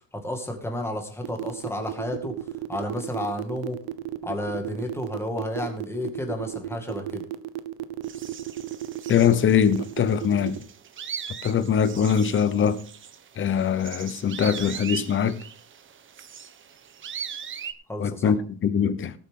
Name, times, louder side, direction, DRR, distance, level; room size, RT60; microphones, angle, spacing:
voice 1, 0.2-2.3 2.7-3.8 4.2-7.2 17.9-18.3, left 1 dB, 5° left, 2.1 m, -31 dB
sound 1, 1.2-10.6, right 14 dB, 65° right, 1.0 m, -33 dB
sound 2, 8.0-17.7, right 8 dB, 30° right, 0.9 m, -40 dB
voice 2, 9.1-10.6 11.4-12.8 13.4-15.4 18.0-19.1, left 8 dB, 30° left, 0.8 m, -22 dB
18.5 x 8.4 x 3.8 m
cardioid pair, 180°, 41 cm